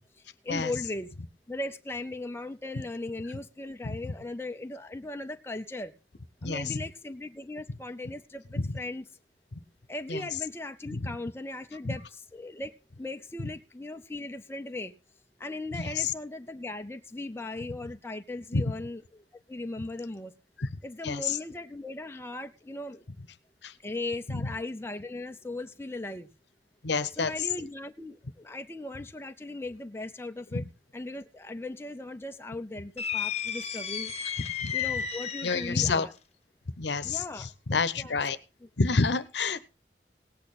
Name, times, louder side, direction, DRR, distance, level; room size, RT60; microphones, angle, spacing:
voice 1, 0.4-1.1 1.5-5.9 6.4-9.1 9.9-14.9 15.4-20.3 20.8-23.0 23.8-26.3 27.1-30.6 30.9-34.1 34.7-36.1 37.0-38.2, left 2 dB, 15° left, 6 dB, 0.6 m, -38 dB
voice 2, 6.4-6.8 8.6-8.7 10.1-10.2 10.9-11.1 11.8-12.0 16.0-16.1 18.5-18.6 20.6-20.7 21.0-21.4 23.6-23.7 24.3-24.5 26.8-27.3 30.5-30.6 34.6-34.7 35.4-36.1 36.8-38.4 38.8-39.6, left 4 dB, 70° left, 15 dB, 0.9 m, -28 dB
sound 1, 33.0-35.8, left 8 dB, 35° left, 1.0 m, -33 dB
18.0 x 8.7 x 4.1 m, 0.31 s
head